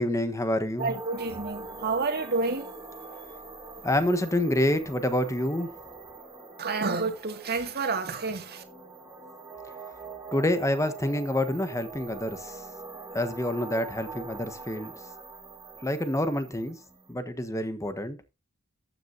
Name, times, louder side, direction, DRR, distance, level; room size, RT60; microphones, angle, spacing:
voice 1, 0.0-0.9 3.8-5.7 10.3-12.6 13.1-14.9 15.8-16.8 17.1-18.2, left 1 dB, 15° left, 1.3 m, -27 dB
sound 1, 0.8-17.1, right 3 dB, 15° right, 2.6 m, -43 dB
voice 2, 0.8-2.8 3.7-3.8 6.6-8.6, right 4 dB, 50° right, 2.2 m, -29 dB
14.0 x 9.7 x 2.8 m
head